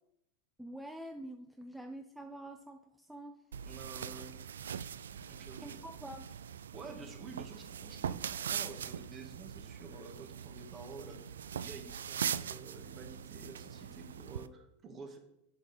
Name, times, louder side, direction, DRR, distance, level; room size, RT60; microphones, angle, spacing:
voice 1, 0.6-3.4 5.6-6.3, right 1 dB, 5° right, 5 dB, 0.6 m, -46 dB
sound 1, 3.5-14.5, right 8 dB, 80° right, 0.3 m, -41 dB
voice 2, 3.7-4.4 5.3-5.8 6.7-15.2, right 4 dB, 30° right, 4 dB, 1.8 m, -50 dB
7.2 x 5.3 x 6.4 m, 0.80 s
hypercardioid pair, 95°, 0 cm